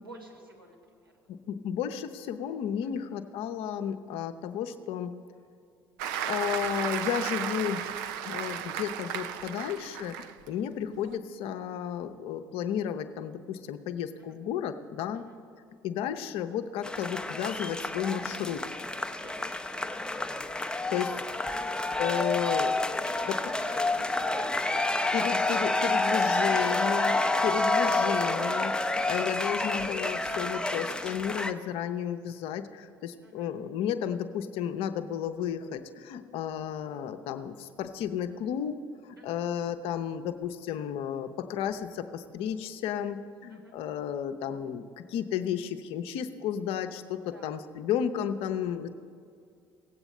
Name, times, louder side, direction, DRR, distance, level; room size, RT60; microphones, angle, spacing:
voice 1, 0.0-1.1 2.8-3.0 14.2-14.4 15.1-15.4 19.2-20.0 20.9-21.0 21.3-21.8 23.0-25.0 25.7-26.0 33.2-33.5 39.2-39.5 43.5-43.7 47.3-47.5, right 1 dB, 90° right, -2 dB, 1.4 m, -51 dB
voice 2, 1.3-5.1 6.3-15.3 15.8-18.6 20.9-21.1 22.0-22.9 23.3-23.5 25.1-48.9, left 9 dB, 55° left, 9 dB, 0.7 m, -33 dB
Applause, 6.0-10.5 10.9-11.2, right 9 dB, 65° right, 0.5 m, -34 dB
sound 1, 16.8-31.5, left 2 dB, 5° left, 0.6 m, -29 dB
17.5 x 8.0 x 4.2 m, 2.3 s
figure-of-eight pair, 55°, 12 cm